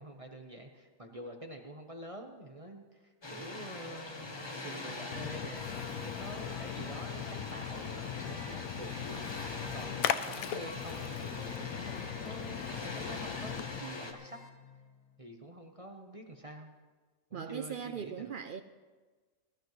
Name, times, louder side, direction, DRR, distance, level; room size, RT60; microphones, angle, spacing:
voice 1, 0.0-9.4 9.7-14.4 15.2-16.8 17.3-18.3, right 1 dB, 30° right, 3 dB, 0.9 m, -47 dB
Water, 3.2-14.1, left 2 dB, 20° left, 0.9 m, -43 dB
sound 1, 3.5-15.4, left 5 dB, 65° left, 1.4 m, -52 dB
Splash splatter, 5.1-13.8, left 10 dB, 85° left, 1.1 m, -39 dB
voice 2, 17.3-18.6, right 7 dB, 75° right, 9 dB, 0.4 m, -40 dB
20.5 x 13.0 x 3.1 m, 1.4 s
omnidirectional pair, 1.4 m